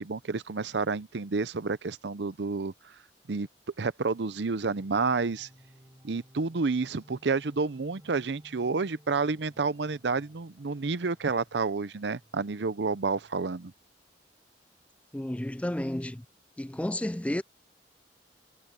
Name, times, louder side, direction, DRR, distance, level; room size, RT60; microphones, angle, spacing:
voice 1, 0.0-2.7 3.3-3.5 3.8-5.5 6.0-13.7, right 4 dB, 70° right, 0.7 m, -30 dB
sound 1, 4.5-13.7, equal, 20° right, 5.3 m, -58 dB
voice 2, 15.1-16.2 16.6-17.4, left 1 dB, 5° left, 0.4 m, -31 dB
head